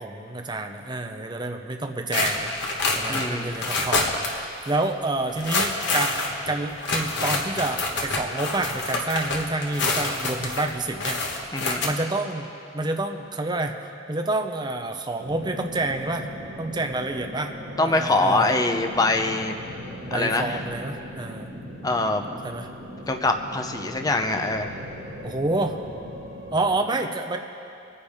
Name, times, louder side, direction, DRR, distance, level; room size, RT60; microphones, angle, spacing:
voice 1, 0.0-11.2 11.6-12.5 12.7-13.8 14.1-16.3 16.6-17.5 17.8-18.6 20.1-21.5 22.4-22.7 25.2-25.8 26.5-27.4, right 2 dB, 25° right, 5 dB, 0.7 m, -28 dB
sound 1, 2.1-4.4 4.6-4.8 5.3-11.9, left 2 dB, 65° left, 1.4 m, -27 dB
voice 2, 3.1-3.5 11.5-11.8 17.8-19.5 20.1-20.6 21.8-22.3 23.1-24.7, left 2 dB, 20° left, 5 dB, 0.7 m, -24 dB
sound 2, 15.2-26.8, equal, 55° right, 2.8 m, -39 dB
24.0 x 9.7 x 3.6 m, 2.7 s
head